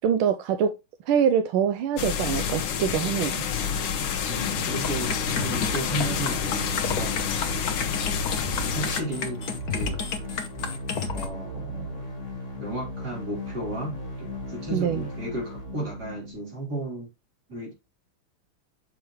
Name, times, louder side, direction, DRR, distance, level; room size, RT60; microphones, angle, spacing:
voice 1, 0.0-0.7 1.1-3.4 14.7-15.0, right 8 dB, 85° right, 1.5 m, -24 dB
sound 1, 2.0-9.0, left 7 dB, 75° left, 1.7 m, -28 dB
voice 2, 4.3-7.6 8.7-10.0 11.1-12.1 12.6-17.1 17.5-17.7, right 1 dB, 50° right, 4.1 m, -34 dB
sound 2, 4.4-16.3, equal, 35° left, 2.3 m, -36 dB
sound 3, 4.8-11.3, left 5 dB, 55° left, 1.5 m, -31 dB
7.2 x 5.9 x 3.1 m
omnidirectional pair, 2.3 m